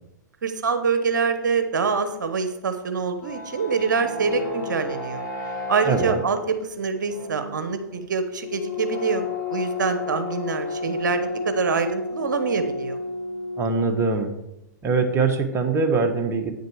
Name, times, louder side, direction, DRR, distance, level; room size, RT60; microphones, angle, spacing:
voice 1, 0.4-5.2 5.7-13.0, right 5 dB, 80° right, 8 dB, 0.8 m, -25 dB
sound 1, 3.0-14.2, left 3 dB, 75° left, 2.8 m, -32 dB
voice 2, 5.9-6.2 13.6-14.3 14.8-16.5, right 4 dB, 25° right, 5 dB, 1.2 m, -22 dB
8.8 x 6.6 x 4.7 m, 0.89 s
hypercardioid pair, 110°, 10 cm